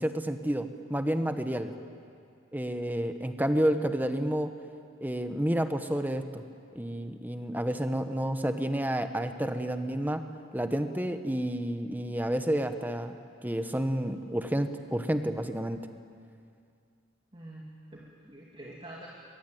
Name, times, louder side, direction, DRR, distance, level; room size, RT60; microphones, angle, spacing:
voice 1, 0.0-1.7 2.5-4.5 5.0-6.4 6.7-10.2 10.5-13.1 13.4-15.9, right 1 dB, 10° right, 8 dB, 1.1 m, -30 dB
voice 2, 17.3-19.1, right 1 dB, 25° right, -3 dB, 2.5 m, -46 dB
23.0 x 22.0 x 9.2 m, 2.4 s
head